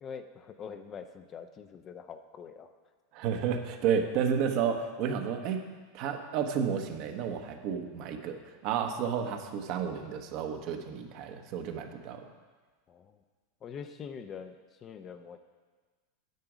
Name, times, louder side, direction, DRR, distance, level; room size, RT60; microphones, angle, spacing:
voice 1, 0.0-2.7 12.9-13.2 13.6-14.5 14.8-15.4, left 6 dB, 35° left, 8 dB, 0.7 m, -44 dB
voice 2, 3.1-5.6 5.9-12.3, right 7 dB, 55° right, 5 dB, 1.0 m, -31 dB
9.4 x 6.9 x 5.0 m, 1.4 s
hypercardioid pair, 100°, 0 cm